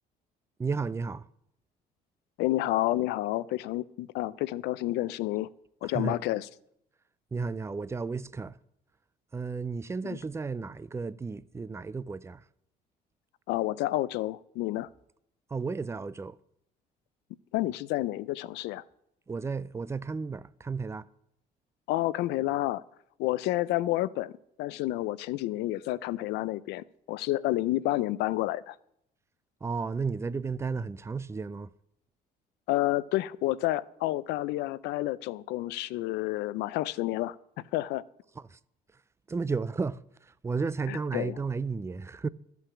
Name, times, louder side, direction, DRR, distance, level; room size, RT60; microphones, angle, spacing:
voice 1, 0.6-1.3 5.8-6.2 7.3-8.6 9.3-12.4 15.5-16.4 19.3-21.1 29.6-31.7 38.4-38.6 39.3-42.3, right 4 dB, 15° right, 0.4 m, -33 dB
voice 2, 2.4-5.5 5.8-6.5 10.0-10.2 13.5-14.9 17.5-18.8 21.9-22.8 23.2-24.3 24.6-28.8 32.7-37.4 37.7-38.0 40.9-41.3, left 16 dB, 85° left, 0.4 m, -30 dB
13.0 x 5.9 x 7.0 m
cardioid pair, 110°, 17 cm